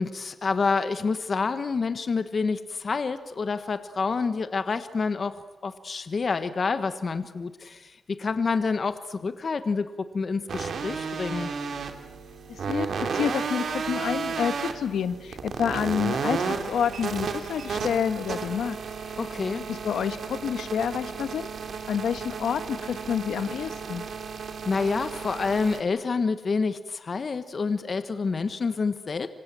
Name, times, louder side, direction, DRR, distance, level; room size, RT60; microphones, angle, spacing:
voice 1, 0.0-5.3 5.6-9.9 10.1-11.5 19.2-19.6 24.6-29.3, left 4 dB, 40° left, 10 dB, 1.3 m, -28 dB
sound 1, 10.5-25.8, right 5 dB, 60° right, 2.7 m, -33 dB
voice 2, 12.5-18.8 19.7-21.5 21.9-24.0, left 8 dB, 90° left, 11 dB, 1.4 m, -28 dB
28.0 x 25.5 x 7.7 m, 1.1 s
wide cardioid pair, 140°, 0 cm